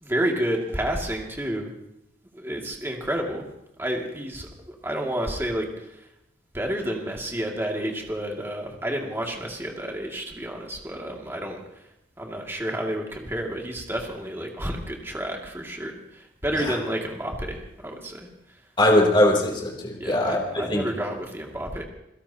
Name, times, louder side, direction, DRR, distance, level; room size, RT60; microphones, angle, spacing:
voice 1, 0.0-1.7 2.3-3.5 3.8-6.1 6.5-11.6 12.2-18.3 20.0-21.8, right 1 dB, 15° right, 0 dB, 2.3 m, -30 dB
voice 2, 18.8-20.9, left 1 dB, 25° left, -1 dB, 3.3 m, -21 dB
28.0 x 17.0 x 2.9 m, 0.82 s
head